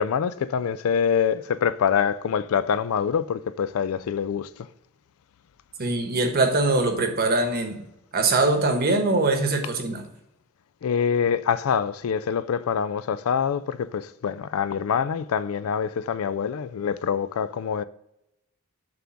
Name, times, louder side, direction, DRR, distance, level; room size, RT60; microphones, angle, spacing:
voice 1, 0.0-4.5 10.8-17.8, left 7 dB, 70° left, 0.3 m, -25 dB
voice 2, 5.8-7.8 8.1-10.1, right 2 dB, 45° right, 1.1 m, -22 dB
7.6 x 3.5 x 5.8 m
head